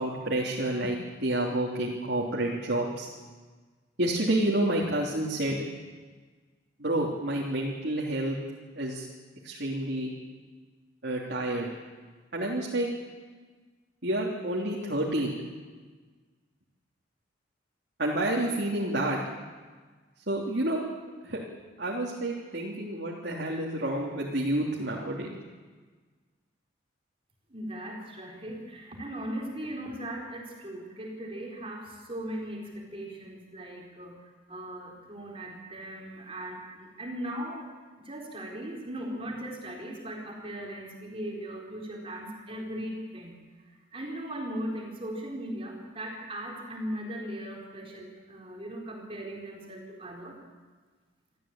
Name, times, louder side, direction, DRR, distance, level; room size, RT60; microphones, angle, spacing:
voice 1, 0.0-3.1 4.0-5.6 6.8-8.4 8.8-9.1 9.4-10.1 11.0-11.7 12.3-12.9 14.0-15.4 18.0-19.2 20.3-20.8 21.2-21.4 21.8-25.4, right 1 dB, 60° right, -3 dB, 3.2 m, -29 dB
voice 2, 27.5-34.2 34.5-37.7 38.0-43.3 43.7-50.4, right 1 dB, 30° right, -1 dB, 4.4 m, -38 dB
26.5 x 14.5 x 9.0 m, 1.4 s
head